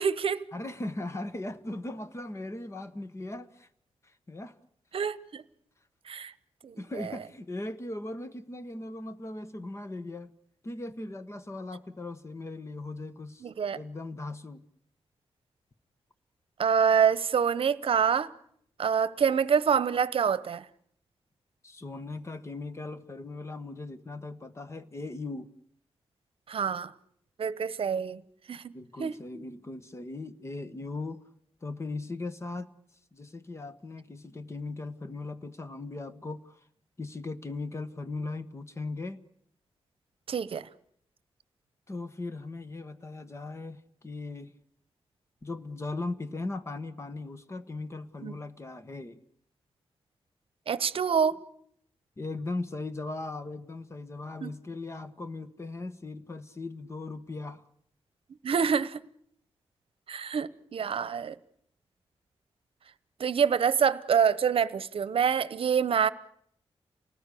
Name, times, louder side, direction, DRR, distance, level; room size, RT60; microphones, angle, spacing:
voice 1, 0.0-0.4 4.9-5.4 6.1-6.3 6.6-6.8 13.4-13.8 16.6-18.3 18.8-20.6 26.5-26.9 27.4-28.2 28.5-28.7 29.0-29.1 40.3-40.6 48.2-48.3 50.7-51.4 54.4-54.5 58.4-59.0 60.1-61.3 63.2-66.1, right 7 dB, 65° right, 0.9 m, -26 dB
voice 2, 0.5-3.7 4.0-4.6 6.8-10.3 10.6-14.6 21.6-25.5 28.7-31.2 31.6-32.7 33.1-36.6 37.0-39.2 41.9-44.5 45.4-49.2 51.3-51.4 52.2-57.6, left 2 dB, 25° left, 1.3 m, -38 dB
29.0 x 19.0 x 8.4 m
wide cardioid pair, 120°, 10 cm